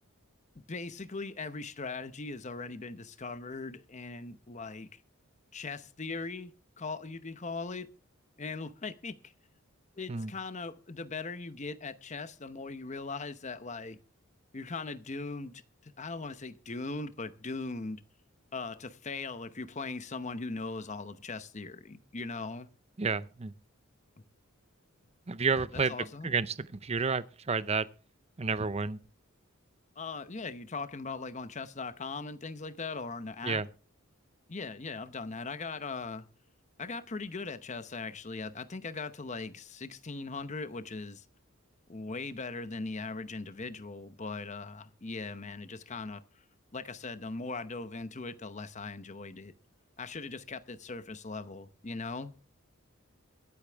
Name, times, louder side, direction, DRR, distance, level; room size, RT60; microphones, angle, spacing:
voice 1, 0.7-5.0 5.5-6.5 6.8-7.9 8.4-9.3 10.0-14.0 14.5-18.0 18.5-22.7 25.7-26.3 30.0-33.6 34.5-36.3 36.8-41.2 41.9-46.2 46.7-49.5 50.0-52.3, left 3 dB, 35° left, 0.8 m, -39 dB
voice 2, 23.0-23.5 25.3-27.9 28.4-29.0 33.4-33.7, right 4 dB, 30° right, 0.5 m, -31 dB
23.0 x 8.4 x 3.5 m
head